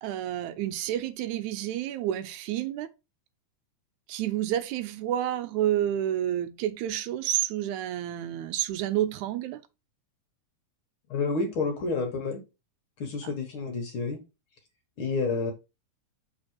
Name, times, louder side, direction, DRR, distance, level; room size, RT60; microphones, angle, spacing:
voice 1, 0.0-2.9 4.1-9.6, right 12 dB, 85° right, 2.0 m, -29 dB
voice 2, 11.1-12.4 13.0-14.2 15.0-15.5, left 4 dB, 55° left, 1.6 m, -29 dB
6.5 x 3.8 x 4.5 m
omnidirectional pair, 3.4 m